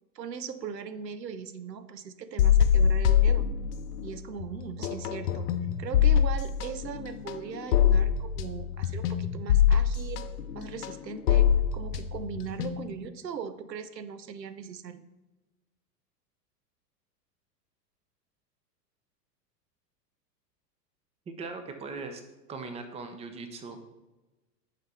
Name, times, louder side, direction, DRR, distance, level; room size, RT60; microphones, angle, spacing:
voice 1, 0.1-3.5 4.0-5.5 5.8-10.3 10.5-15.0, right 7 dB, 85° right, 13 dB, 0.6 m, -39 dB
sound 1, 2.4-4.1 4.4-13.1, left 8 dB, 70° left, 0.7 m, -24 dB
voice 2, 21.3-22.2 22.5-23.8, right 4 dB, 15° right, 7 dB, 0.6 m, -39 dB
10.0 x 4.1 x 4.2 m, 1.1 s
figure-of-eight pair, 90°, 49 cm